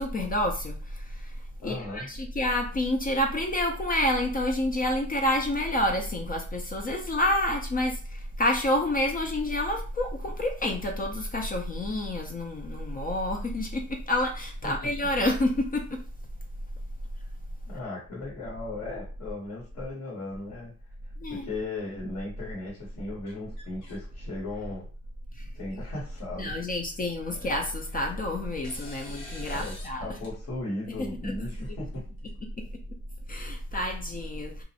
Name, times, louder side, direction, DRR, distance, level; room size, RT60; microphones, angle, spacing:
voice 1, 0.0-1.3 1.6-16.0 21.2-21.5 26.4-30.0 31.0-31.5 33.3-34.6, left 1 dB, 30° left, 3 dB, 0.4 m, -28 dB
voice 2, 1.6-2.1 14.6-14.7 17.6-20.7 21.0-24.8 25.5-26.5 27.4-27.5 29.5-32.0, left 2 dB, 65° left, -5 dB, 1.3 m, -37 dB
sound 1, 23.3-24.0 24.4-24.9 25.7-25.8 26.1-26.2 27.6-28.1 28.6-29.9 30.2-30.3 31.5-32.3, left 2 dB, 90° left, 0.9 m, -48 dB
2.4 x 2.0 x 2.7 m, 0.38 s
cardioid pair, 90°, 30 cm